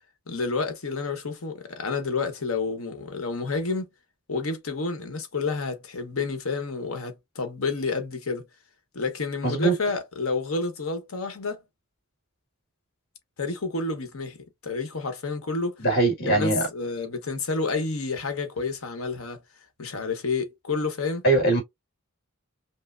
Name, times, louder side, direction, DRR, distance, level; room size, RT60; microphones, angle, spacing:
voice 1, 0.3-3.9 4.3-8.4 8.9-11.6 13.4-14.4 14.6-15.8 16.3-19.4 19.8-21.2, left 4 dB, 80° left, 1.0 m, -29 dB
voice 2, 9.4-9.7 15.8-16.6 21.2-21.6, right 2 dB, 45° left, 1.7 m, -21 dB
5.4 x 2.0 x 2.5 m
head